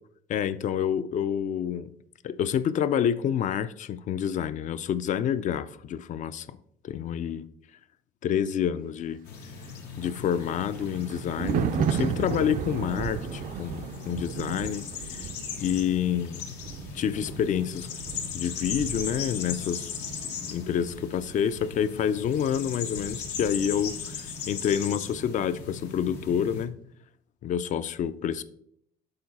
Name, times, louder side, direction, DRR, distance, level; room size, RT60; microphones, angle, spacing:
voice 1, 0.3-1.9 2.2-6.6 6.8-7.4 8.2-9.2 10.0-14.8 15.1-15.3 15.6-16.5 16.9-17.9 18.3-19.9 20.4-26.8 27.4-28.4, left 9 dB, 50° left, 15 dB, 0.4 m, -28 dB
sound 1, 9.3-26.7, left 6 dB, 85° left, 0.9 m, -38 dB
Thunder, 9.6-24.2 24.5-24.8, right 8 dB, 55° right, 0.4 m, -35 dB
6.8 x 3.9 x 4.1 m, 0.71 s
cardioid pair, 110°, 17 cm